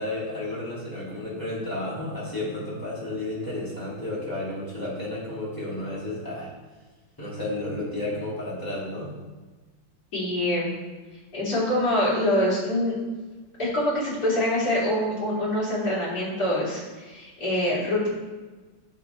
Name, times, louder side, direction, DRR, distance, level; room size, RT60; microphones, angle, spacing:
voice 1, 0.0-6.5 7.2-9.1, left 1 dB, 10° left, -8 dB, 3.0 m, -32 dB
voice 2, 10.1-10.7 11.3-12.9 13.6-18.1, left 1 dB, 45° left, -8 dB, 3.8 m, -25 dB
8.2 x 7.4 x 4.5 m, 1.3 s
omnidirectional pair, 2.2 m